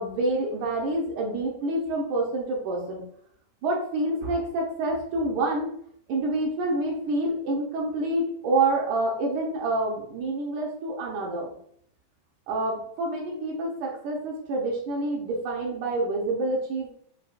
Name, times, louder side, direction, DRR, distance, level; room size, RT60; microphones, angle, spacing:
voice 1, 0.0-3.0 3.6-5.7 6.1-11.5 12.5-16.9, right 2 dB, 80° right, -2 dB, 2.3 m, -27 dB
7.6 x 2.7 x 2.5 m, 0.64 s
omnidirectional pair, 3.6 m